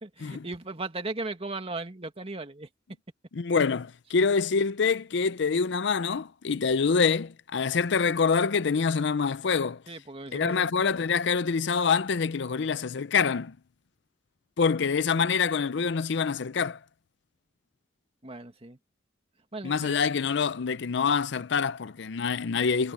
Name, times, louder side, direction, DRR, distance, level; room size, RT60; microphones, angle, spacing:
voice 1, 0.0-2.7 9.9-10.8 18.2-18.8 19.5-20.0, right 2 dB, 35° right, 2.1 m, -37 dB
voice 2, 3.3-9.8 10.3-13.5 14.6-16.8 19.6-22.9, left 5 dB, 70° left, 0.5 m, -26 dB
head